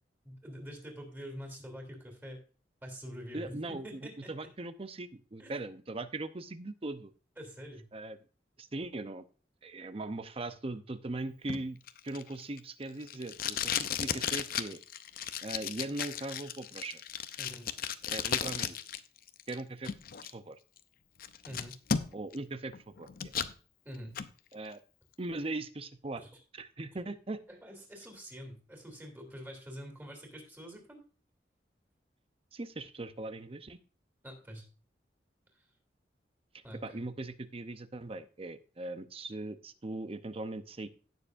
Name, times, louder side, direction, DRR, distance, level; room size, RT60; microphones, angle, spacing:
voice 1, 0.2-2.4 2.8-4.5 5.4-5.5 7.4-7.9 17.4-17.7 21.4-21.7 23.8-24.2 26.2-26.4 27.5-31.0 34.2-34.6 35.5-35.6 36.6-37.0, equal, 10° right, 3 dB, 3.1 m, -46 dB
voice 2, 3.3-3.9 4.3-7.1 7.9-8.2 8.6-9.2 9.6-11.8 12.0-14.8 15.4-17.0 18.1-18.8 19.5-19.9 20.3-20.6 22.1-22.7 23.0-23.1 24.5-24.8 25.2-26.2 26.6-27.4 32.5-33.8 36.8-40.9, right 2 dB, 35° right, 11 dB, 0.7 m, -39 dB
Packing tape duct tape, 11.5-19.0 19.3-20.3 20.8-20.9 21.2-22.4 22.7-23.5 23.9-24.3, left 8 dB, 55° left, 0.6 m, -35 dB
17.0 x 6.8 x 2.6 m, 0.38 s
head